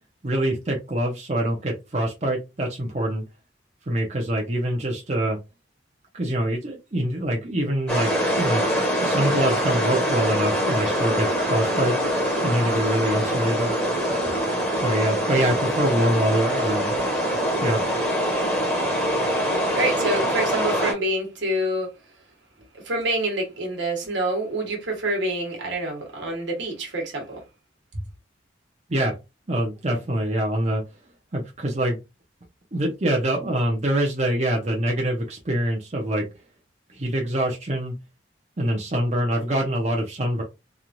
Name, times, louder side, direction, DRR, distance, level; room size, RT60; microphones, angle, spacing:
voice 1, 0.2-3.2 3.9-5.4 6.1-8.1 8.4-12.0 12.4-13.7 14.2-14.4 14.7-17.0 17.6-17.8 28.9-29.1 29.5-30.8 31.3-32.0 32.7-36.3 36.9-37.9 38.6-40.4, right 1 dB, 35° right, 0.6 m, -25 dB
sound 1, 7.9-20.9, equal, 5° left, 0.9 m, -24 dB
voice 2, 19.7-21.9 22.8-27.4, right 1 dB, 75° right, 1.2 m, -26 dB
3.0 x 2.4 x 2.5 m
head